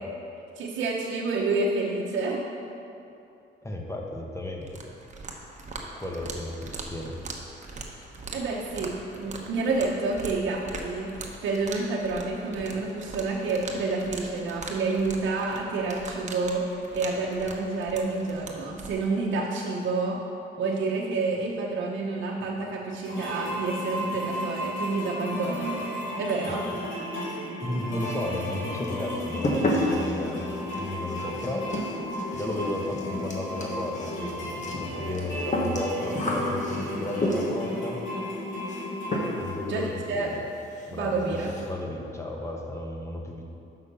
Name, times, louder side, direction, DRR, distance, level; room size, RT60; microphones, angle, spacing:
voice 1, 0.6-2.4 8.3-11.1 11.4-20.2 20.6-25.9 26.2-26.7 39.7-40.3 40.9-41.5, right 3 dB, 70° right, -4 dB, 0.9 m, -29 dB
voice 2, 3.6-4.8 5.9-7.1 27.6-30.5 30.8-31.8 32.3-38.0 39.4-40.4 40.9-43.4, left 1 dB, 15° left, 0 dB, 1.2 m, -34 dB
sound 1, 4.6-18.9, right 3 dB, 35° right, 1.0 m, -41 dB
sound 2, 23.0-39.5, left 1 dB, 75° left, 2.1 m, -34 dB
sound 3, 28.0-28.6 28.8-37.7 38.7-38.9 39.1-39.6 39.9-40.0 40.3-40.4 40.7-40.9 41.2-41.7, left 1 dB, 40° left, 1.3 m, -31 dB
6.0 x 5.7 x 6.8 m, 2.7 s
cardioid pair, 90°, 20 cm